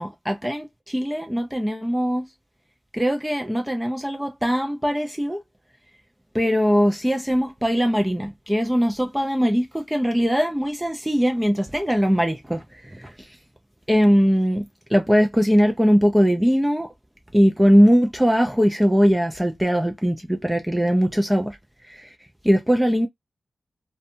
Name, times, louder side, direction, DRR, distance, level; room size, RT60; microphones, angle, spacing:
voice 1, 0.0-2.3 2.9-5.4 6.3-13.1 13.9-14.7 14.9-16.9 17.3-21.6 21.9-22.1 22.4-23.1, equal, 5° right, 0.4 m, -20 dB
2.5 x 2.2 x 2.6 m
wide cardioid pair, 85°, 0 cm